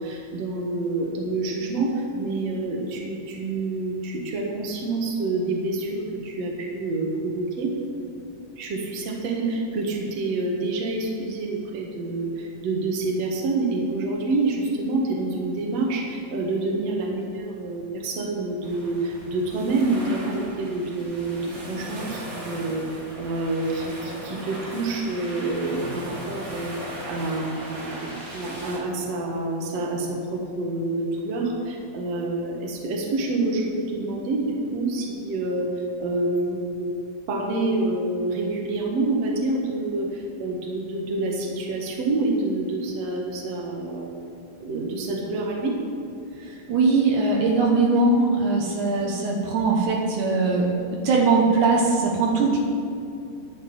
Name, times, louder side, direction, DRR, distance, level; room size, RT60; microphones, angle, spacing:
voice 1, 0.0-7.7 8.6-21.4 21.7-35.7 36.0-36.9 37.3-44.1 44.6-45.8, right 2 dB, 60° right, -1 dB, 2.6 m, -27 dB
sound 1, 18.6-28.8, right 1 dB, 30° right, 2.3 m, -38 dB
voice 2, 46.4-50.7 51.0-52.6, right 3 dB, 75° right, -2 dB, 2.7 m, -21 dB
11.0 x 7.7 x 8.0 m, 2.5 s
omnidirectional pair, 3.5 m